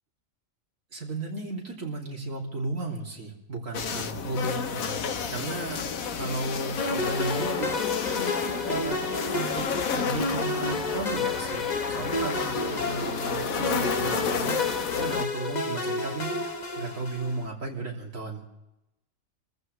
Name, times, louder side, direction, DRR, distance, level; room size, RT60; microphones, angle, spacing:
voice 1, 0.9-5.8 6.1-9.0 9.3-16.4 16.7-18.5, right 2 dB, 70° right, -1 dB, 3.3 m, -35 dB
sound 1, 3.7-15.3, left 6 dB, 90° left, 1.4 m, -31 dB
sound 2, 6.8-17.4, left 2 dB, 35° left, 1.1 m, -31 dB
28.0 x 14.5 x 3.2 m, 0.92 s
omnidirectional pair, 1.4 m